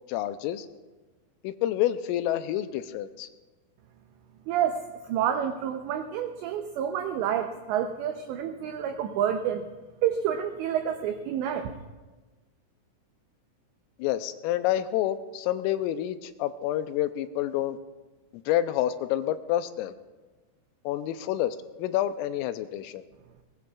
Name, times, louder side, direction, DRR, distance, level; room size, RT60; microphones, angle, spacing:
voice 1, 0.1-0.7 1.4-3.3 14.0-17.8 18.5-19.9 20.9-23.0, left 12 dB, 85° left, 11 dB, 3.1 m, -28 dB
voice 2, 4.5-4.8 5.1-9.6 10.0-11.7, right 9 dB, 90° right, 6 dB, 2.5 m, -28 dB
21.0 x 20.5 x 2.4 m, 1.2 s
omnidirectional pair, 6.0 m